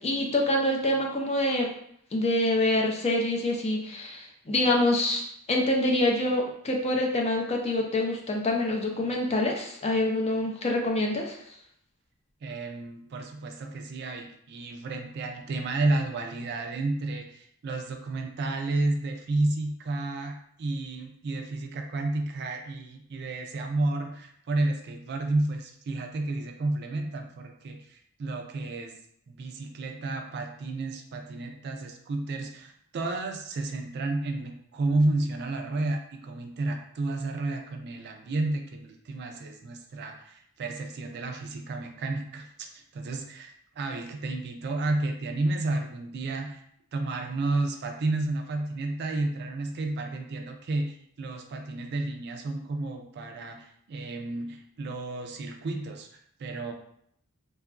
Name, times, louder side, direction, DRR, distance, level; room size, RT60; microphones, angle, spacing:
voice 1, 0.0-1.7 2.1-11.4, left 1 dB, 30° left, 1 dB, 0.4 m, -26 dB
voice 2, 12.4-29.0 29.3-46.6 46.9-56.7, right 2 dB, 50° right, 4 dB, 0.3 m, -31 dB
2.8 x 2.3 x 2.4 m, 0.69 s
head